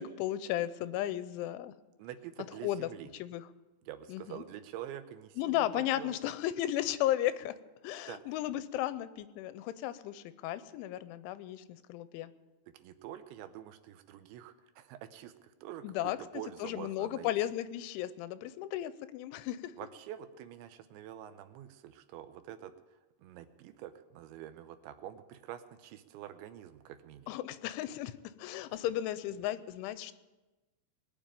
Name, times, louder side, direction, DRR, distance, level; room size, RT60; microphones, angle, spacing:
voice 1, 0.0-1.7 2.6-2.9 3.2-3.4 4.1-4.4 5.4-7.5 7.8-12.3 15.8-16.2 16.6-19.7 27.3-28.1 28.4-30.1, left 13 dB, 85° left, 14 dB, 3.1 m, -34 dB
voice 2, 2.0-3.1 3.9-6.2 8.1-8.3 12.7-17.3 19.8-27.3, right 11 dB, 85° right, 10 dB, 3.0 m, -46 dB
21.0 x 7.0 x 8.9 m, 1.1 s
omnidirectional pair, 5.4 m